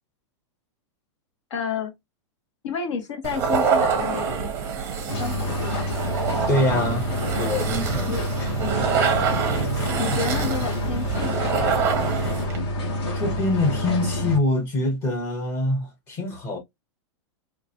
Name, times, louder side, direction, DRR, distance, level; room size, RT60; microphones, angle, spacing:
voice 1, 1.5-1.9 2.6-4.5 5.2-5.9 8.1-8.2 8.6-8.9 10.0-11.9, left 5 dB, 70° left, 1.3 m, -31 dB
sound 1, 3.2-12.6, right 6 dB, 15° right, 0.6 m, -26 dB
sound 2, 5.1-14.4, left 1 dB, 55° left, 1.3 m, -28 dB
voice 2, 6.5-7.1 7.4-8.1 8.4-8.5 13.1-16.6, left 1 dB, 15° left, 0.8 m, -25 dB
3.7 x 2.5 x 2.8 m
supercardioid pair, 175°, 16 cm